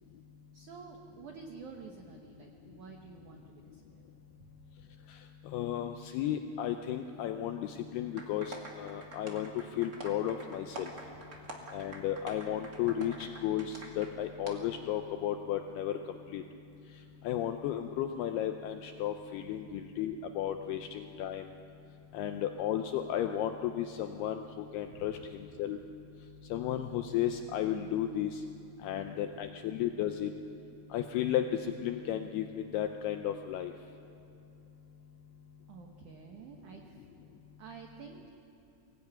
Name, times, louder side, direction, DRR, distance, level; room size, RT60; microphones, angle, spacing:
voice 1, 0.5-4.1 4.4-4.5 20.6-20.7 24.8-25.3 35.7-37.0 37.6-38.3, right 6 dB, 90° right, 3 dB, 1.7 m, -50 dB
voice 2, 5.5-9.5 9.8-10.9 11.7-15.9 16.3-16.4 17.2-21.5 22.1-25.8 26.5-28.4 28.8-30.3 30.9-33.7, left 10 dB, 85° left, 6 dB, 2.3 m, -34 dB
sound 1, 8.2-14.1 14.4-14.5, right 2 dB, 45° right, 1.2 m, -46 dB
23.5 x 17.5 x 9.0 m, 2.6 s
omnidirectional pair, 5.4 m